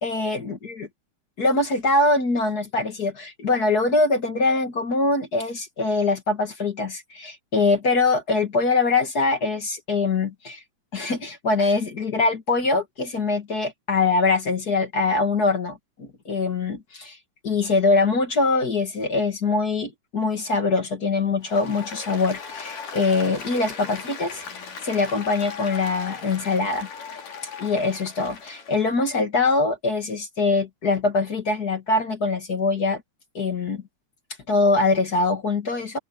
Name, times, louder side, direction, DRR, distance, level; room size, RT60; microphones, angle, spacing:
voice 1, 0.0-0.9 1.4-10.6 10.9-17.2 17.4-24.4 24.8-26.9 27.6-33.0 33.3-33.8 34.5-36.0, left 3 dB, 35° left, 1.9 m, -23 dB
Applause, 21.4-28.9, left 6 dB, 90° left, 5.6 m, -38 dB
omnidirectional pair, 3.6 m